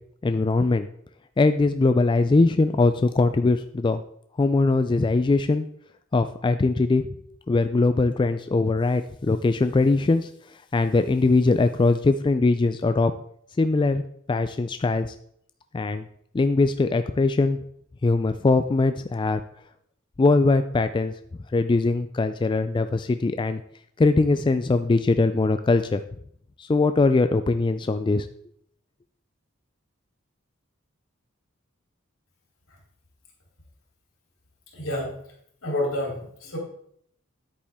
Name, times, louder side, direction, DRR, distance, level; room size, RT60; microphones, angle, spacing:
voice 1, 0.2-0.9 1.4-4.0 4.4-5.6 6.1-7.1 7.5-10.3 10.7-13.1 13.6-14.0 14.3-15.1 15.7-16.1 16.3-17.6 18.0-19.4 20.2-21.1 21.5-23.6 24.0-26.0 26.6-28.3, left 3 dB, 25° left, 9 dB, 0.3 m, -21 dB
voice 2, 34.7-35.2 35.6-36.6, left 1 dB, 75° left, -2 dB, 3.4 m, -29 dB
10.0 x 8.6 x 3.5 m, 0.68 s
head